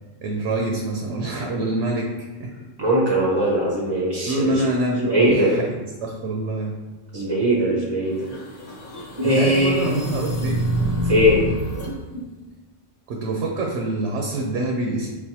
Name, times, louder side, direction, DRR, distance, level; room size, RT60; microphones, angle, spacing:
voice 1, 0.2-2.1 2.4-2.5 4.2-6.7 9.2-10.7 13.1-15.1, right 2 dB, 75° right, 1 dB, 0.9 m, -25 dB
voice 2, 2.8-4.6 5.1-5.5 7.1-8.1 9.2-9.8 11.0-11.4 11.8-11.9, equal, 30° right, -4 dB, 0.5 m, -20 dB
sound 1, 8.1-11.9, equal, 85° left, 1.3 m, -27 dB
6.1 x 2.2 x 2.8 m, 1.3 s
omnidirectional pair, 1.3 m